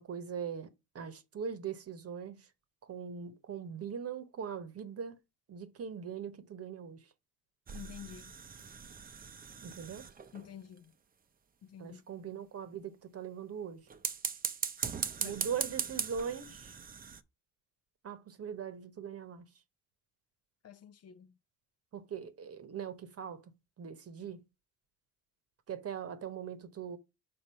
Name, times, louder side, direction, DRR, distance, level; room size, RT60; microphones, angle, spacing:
voice 1, 0.0-2.5 2.8-5.2 5.5-7.1 9.6-10.1 11.8-13.9 15.2-16.8 18.0-19.5 21.9-24.4 25.7-27.0, right 7 dB, 40° right, 1.0 m, -41 dB
voice 2, 7.7-8.3 10.3-10.9 11.6-12.1 15.2-15.5 20.6-21.3, left 9 dB, 40° left, 0.6 m, -49 dB
sound 1, 7.7-10.5 13.9-17.2, right 6 dB, 25° right, 0.6 m, -39 dB
5.3 x 4.1 x 5.6 m
supercardioid pair, 80°, 38 cm